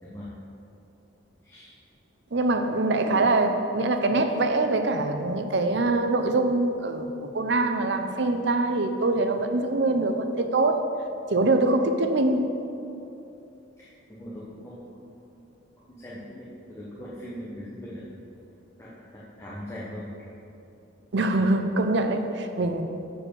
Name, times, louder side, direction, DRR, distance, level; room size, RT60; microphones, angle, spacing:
voice 1, 0.0-0.3 1.4-1.7 3.0-3.2 13.8-15.4 15.9-18.0 18.8-20.1, equal, 15° left, -7 dB, 0.9 m, -41 dB
voice 2, 2.3-7.1 7.3-10.9 11.3-12.5 21.1-22.8, right 2 dB, 60° right, 6 dB, 0.6 m, -24 dB
7.1 x 4.8 x 6.9 m, 2.8 s
head